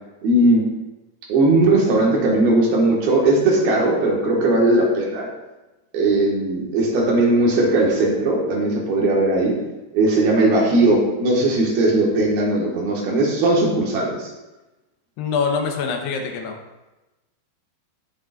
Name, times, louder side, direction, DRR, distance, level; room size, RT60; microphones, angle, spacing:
voice 1, 0.2-0.6 1.3-5.3 5.9-9.6 9.9-14.3, right 2 dB, 65° right, -2 dB, 3.5 m, -18 dB
voice 2, 15.2-16.6, left 5 dB, 75° left, 2 dB, 3.0 m, -24 dB
18.0 x 7.4 x 2.6 m, 1.0 s
omnidirectional pair, 4.9 m